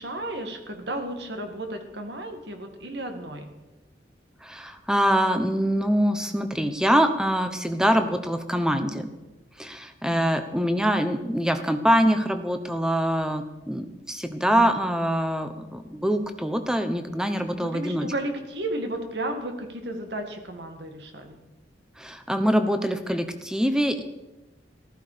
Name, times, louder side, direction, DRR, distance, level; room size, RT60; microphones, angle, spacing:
voice 1, 0.0-3.5 14.5-14.8 17.6-21.4, right 1 dB, 70° right, 5 dB, 2.1 m, -33 dB
voice 2, 4.4-9.1 9.6-18.1 22.0-24.0, equal, 5° right, 8 dB, 0.9 m, -24 dB
15.0 x 14.0 x 5.1 m, 1.0 s
head